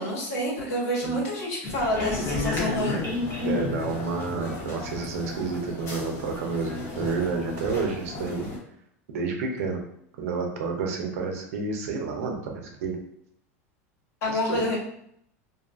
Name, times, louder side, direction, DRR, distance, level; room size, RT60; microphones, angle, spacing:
voice 1, 0.0-3.0 14.2-14.8, equal, 80° left, -6 dB, 1.4 m, -28 dB
sound 1, 1.6-8.6, left 2 dB, 40° left, 1.1 m, -32 dB
voice 2, 3.4-8.5 9.1-9.8 10.2-13.0 14.3-14.8, right 4 dB, 80° right, 2 dB, 0.6 m, -30 dB
2.6 x 2.4 x 2.4 m, 0.70 s
supercardioid pair, 110°, 8 cm